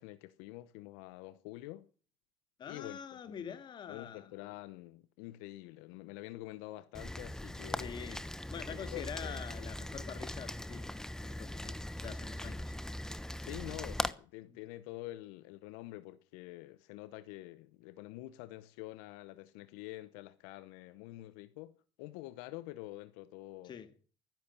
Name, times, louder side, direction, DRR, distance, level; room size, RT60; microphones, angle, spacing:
voice 1, 0.0-1.9 2.7-3.6 3.9-7.9 8.7-9.4 13.4-23.7, left 17 dB, 85° left, 0.9 m, -47 dB
voice 2, 2.6-4.3 7.8-10.9 11.2-12.7 23.6-23.9, left 8 dB, 45° left, 2.1 m, -46 dB
Rain, 6.9-14.1, left 1 dB, 5° left, 1.0 m, -40 dB
13.0 x 10.5 x 6.8 m
supercardioid pair, 95°, 11 cm